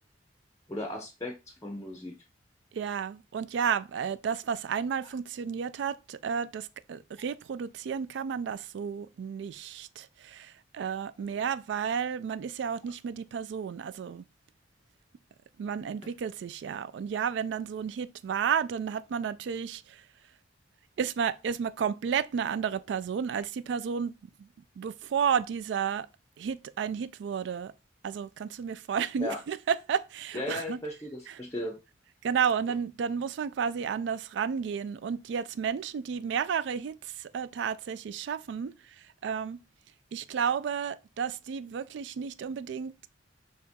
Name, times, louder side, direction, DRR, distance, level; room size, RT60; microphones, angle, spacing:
voice 1, 0.7-2.2 29.2-29.4 30.3-31.8, left 1 dB, 15° left, 0.5 m, -36 dB
voice 2, 2.7-14.2 15.6-20.0 21.0-24.1 24.4-24.5 24.8-26.1 26.4-27.7 28.0-30.8 31.3-31.4 32.2-39.6 40.1-42.9, right 7 dB, 70° right, 0.3 m, -32 dB
4.2 x 2.9 x 3.5 m
head